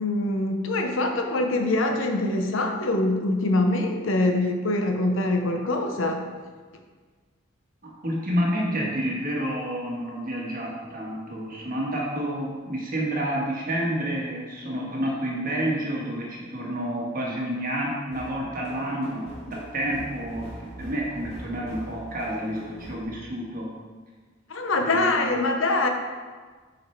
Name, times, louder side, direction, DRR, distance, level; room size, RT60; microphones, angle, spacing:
voice 1, 0.0-6.3 24.5-25.9, left 2 dB, 70° left, 4 dB, 0.7 m, -24 dB
voice 2, 7.8-20.5 20.8-23.7 24.8-25.2, equal, 45° right, -3 dB, 1.4 m, -29 dB
sound 1, 18.1-23.0, equal, 35° left, 2.2 m, -42 dB
6.3 x 5.1 x 4.5 m, 1.4 s
head